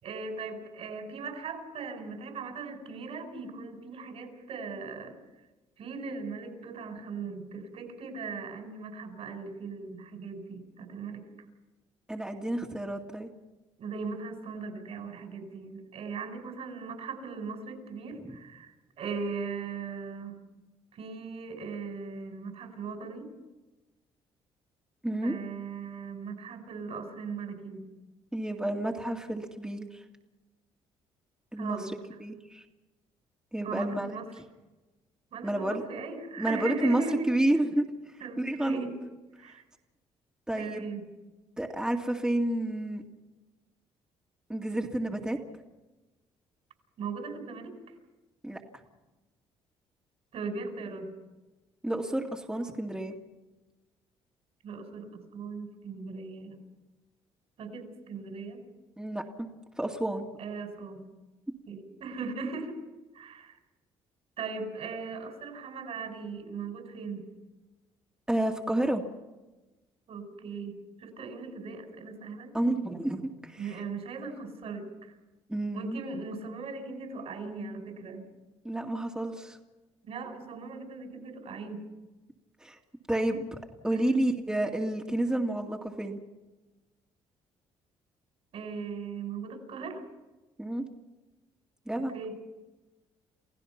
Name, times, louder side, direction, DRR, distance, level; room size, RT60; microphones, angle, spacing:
voice 1, 0.0-5.1 5.8-11.2 13.8-18.7 19.0-20.4 20.9-23.3 25.2-27.9 31.6-31.9 33.6-34.3 35.3-37.3 38.2-38.9 39.4-39.6 40.6-41.0 47.0-47.7 50.3-51.1 54.6-56.6 57.6-58.6 60.4-61.0 61.7-62.8 63.1-63.5 64.4-67.3 70.1-72.5 73.6-74.9 75.7-78.2 80.0-81.8 83.9-84.2 88.5-90.0 92.1-92.3, right 4 dB, 65° right, 5 dB, 5.1 m, -38 dB
voice 2, 12.1-13.3 25.0-25.3 28.3-30.0 31.5-31.9 32.2-32.6 33.5-34.1 35.4-35.8 36.4-37.9 38.4-38.8 40.5-40.8 41.6-43.0 44.5-45.4 48.4-48.6 51.8-53.1 59.0-59.5 59.8-60.3 68.3-69.0 72.5-73.8 75.5-76.0 78.6-79.6 82.6-82.8 83.1-83.5 83.8-86.2 90.6-90.8 91.9-92.1, right 1 dB, 5° right, 1 dB, 2.1 m, -30 dB
28.5 x 16.0 x 5.9 m, 1.1 s
cardioid pair, 80°, 11 cm